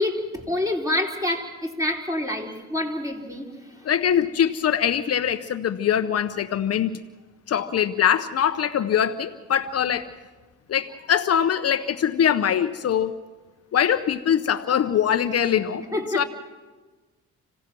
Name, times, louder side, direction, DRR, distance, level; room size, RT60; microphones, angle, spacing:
voice 1, 0.0-3.5 15.9-16.2, left 1 dB, 10° right, 1 dB, 3.9 m, -27 dB
voice 2, 3.8-7.0 7.5-10.1 10.7-13.1 13.7-15.8 16.1-16.2, left 9 dB, 55° left, 9 dB, 0.9 m, -22 dB
27.5 x 17.0 x 6.2 m, 1.3 s
cardioid pair, 90°, 30 cm